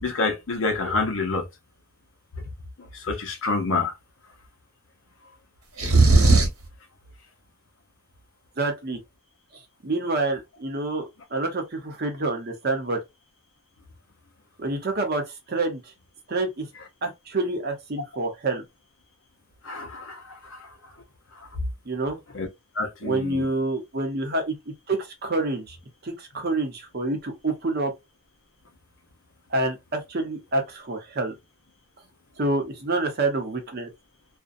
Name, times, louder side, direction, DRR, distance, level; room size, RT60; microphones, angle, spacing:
voice 1, 0.0-1.4 2.8-3.9 19.6-20.7 21.4-21.5 22.3-22.5 22.7-23.5, left 3 dB, 65° left, 0.7 m, -28 dB
sound 1, 5.8-6.7, right 3 dB, 90° right, 1.0 m, -16 dB
voice 2, 8.6-9.0 9.8-13.0 14.6-15.8 16.3-16.7 17.0-18.6 21.9-22.2 23.0-24.5 24.9-25.8 26.0-27.9 29.5-31.3 32.4-33.9, right 2 dB, 45° right, 0.7 m, -27 dB
2.5 x 2.1 x 2.5 m
head